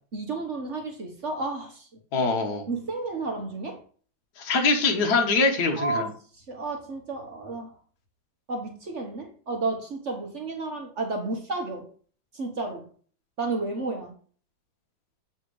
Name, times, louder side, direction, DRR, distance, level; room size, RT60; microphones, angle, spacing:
voice 1, 0.1-1.9 2.7-3.8 5.8-7.7 8.5-11.9 12.3-12.9 13.4-14.2, right 3 dB, 45° right, 1.3 m, -32 dB
voice 2, 2.1-2.6 4.4-6.1, left 3 dB, 55° left, 1.7 m, -23 dB
8.1 x 3.5 x 4.8 m
omnidirectional pair, 2.1 m